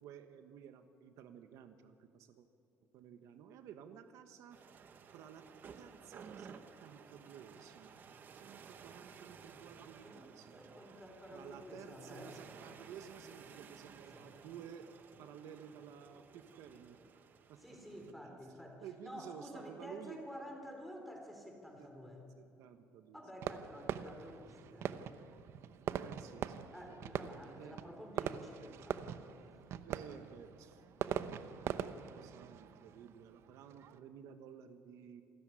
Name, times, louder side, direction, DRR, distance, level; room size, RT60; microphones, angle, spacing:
voice 1, 0.0-2.5 2.9-4.6 5.1-5.4 5.7-8.0 8.4-10.6 11.3-17.0 17.5-17.6 18.2-18.5 18.8-20.2 21.8-21.9 22.4-23.2 23.5-23.6 25.8-27.0 27.6-27.8 28.1-28.3 29.8-30.8 31.3-35.2, right 8 dB, 70° right, 8 dB, 1.3 m, -53 dB
sound 1, 4.5-18.1, right 6 dB, 35° right, 1.2 m, -56 dB
voice 2, 10.6-12.4 14.1-14.3 17.6-22.2 23.1-25.1 26.7-29.2, equal, ahead, 2 dB, 3.6 m, -51 dB
Fireworks, 23.4-34.0, right 9 dB, 50° right, 0.8 m, -43 dB
28.0 x 14.0 x 10.0 m, 2.7 s
cardioid pair, 175°, 5 cm